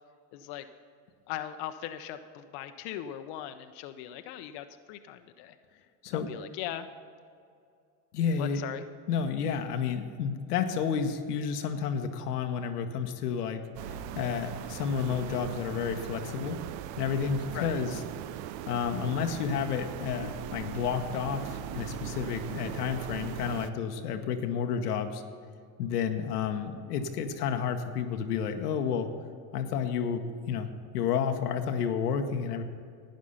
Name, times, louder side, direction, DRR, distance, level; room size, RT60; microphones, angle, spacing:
voice 1, 0.3-0.6 1.3-5.5 6.1-6.9 8.4-8.8 17.5-17.8, left 11 dB, 65° left, 8 dB, 0.7 m, -39 dB
voice 2, 8.1-8.6 9.1-13.6 14.1-16.6 17.0-18.0 18.7-25.2 25.8-29.1 29.5-30.7 30.9-32.6, left 7 dB, 90° left, 6 dB, 1.0 m, -31 dB
sound 1, 13.8-23.7, right 10 dB, 70° right, 0.6 m, -39 dB
11.5 x 9.2 x 5.6 m, 2.3 s
hypercardioid pair, 85°, 45 cm